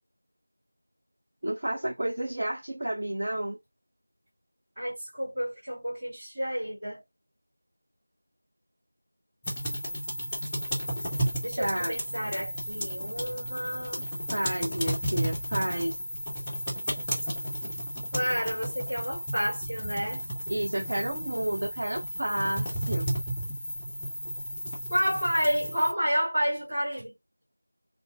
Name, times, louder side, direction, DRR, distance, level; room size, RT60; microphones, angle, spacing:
voice 1, 1.4-3.6 11.6-11.9 14.3-16.0 20.5-23.1, right 1 dB, 30° right, 0.7 m, -31 dB
voice 2, 4.8-7.0 11.4-14.0 18.1-20.2 24.9-27.1, equal, 15° right, 1.9 m, -30 dB
sound 1, 9.4-25.9, equal, 5° left, 0.7 m, -33 dB
3.9 x 2.1 x 3.4 m
figure-of-eight pair, 175°, 0 cm